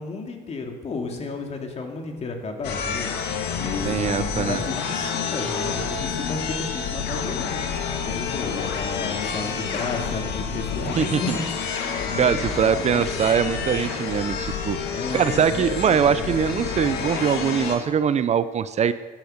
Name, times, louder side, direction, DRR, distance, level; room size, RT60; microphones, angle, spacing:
voice 1, 0.0-3.1 3.6-7.6 8.0-11.4 12.1-13.2 14.9-16.3, left 3 dB, 40° left, 3 dB, 2.6 m, -33 dB
sound 1, 2.6-17.8, left 6 dB, 85° left, 2.0 m, -29 dB
voice 2, 3.8-4.6 11.0-11.4 11.9-18.9, right 7 dB, 40° right, 13 dB, 0.6 m, -22 dB
16.0 x 10.5 x 6.6 m, 1.3 s
cardioid pair, 110°, 17 cm